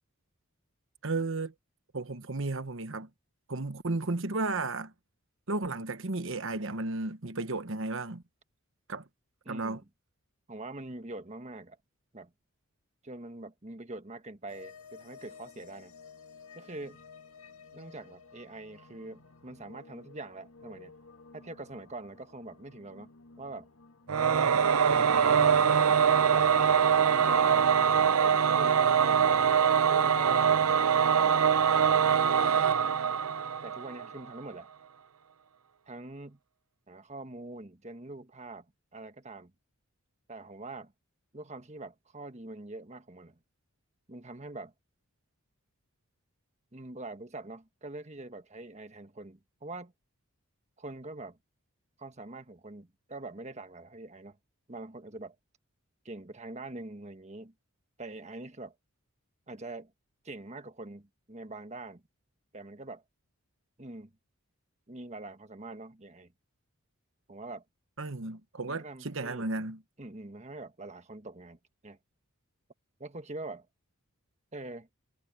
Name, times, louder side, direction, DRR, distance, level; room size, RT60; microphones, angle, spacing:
voice 1, 1.0-1.5 1.9-3.1 3.5-4.9 5.5-8.2 8.9-9.0 9.5-9.8 68.0-69.8, right 3 dB, 60° right, 1.2 m, -33 dB
voice 2, 9.4-9.8 10.5-11.8 12.1-12.3 13.0-15.9 16.5-17.0 17.7-20.9 21.3-23.1 23.4-23.7 24.3-26.0 26.2-26.5 27.1-27.7 28.2-29.4 29.7-30.6 32.2-33.1 33.6-34.7 35.9-36.4 36.9-38.7 38.9-39.5 40.3-40.9 41.3-43.4 44.1-44.7 46.7-49.9 50.8-51.4 52.0-54.4 54.7-55.4 56.0-57.5 58.0-58.7 59.5-59.9 60.2-62.0 62.5-63.0 63.8-64.1 64.9-66.3 67.3-67.6 68.7-69.5 70.0-72.0 73.0-73.7 74.5-74.9, right 2 dB, 30° right, 1.5 m, -44 dB
sound 1, 14.5-26.2, left 4 dB, 75° left, 1.9 m, -54 dB
Singing / Musical instrument, 24.1-34.1, right 7 dB, 85° right, 0.6 m, -23 dB
head